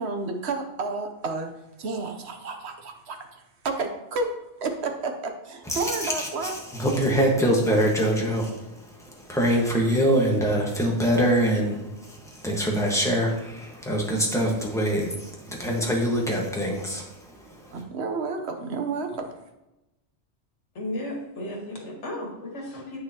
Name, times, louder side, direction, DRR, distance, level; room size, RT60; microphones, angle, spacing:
voice 1, 0.0-1.5 1.8-4.3 4.6-6.6 17.7-19.3, right 3 dB, 70° right, 5 dB, 1.1 m, -31 dB
voice 2, 5.6-17.7, equal, 5° left, -2 dB, 1.3 m, -24 dB
voice 3, 20.8-23.0, left 1 dB, 90° left, 0 dB, 1.8 m, -34 dB
8.5 x 6.3 x 2.9 m, 0.96 s
omnidirectional pair, 1.2 m